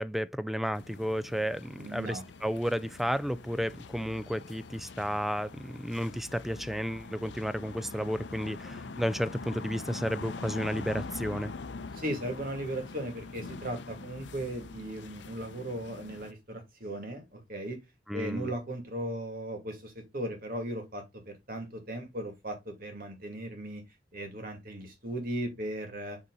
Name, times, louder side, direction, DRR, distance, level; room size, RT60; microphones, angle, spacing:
voice 1, 0.0-11.5 18.1-18.5, equal, ahead, 0.3 m, -32 dB
sound 1, 0.7-16.3, left 3 dB, 80° left, 0.6 m, -43 dB
voice 2, 1.8-2.2 11.9-17.8 18.1-23.8 24.1-26.2, right 1 dB, 55° right, 2.6 m, -37 dB
8.0 x 4.1 x 4.1 m
head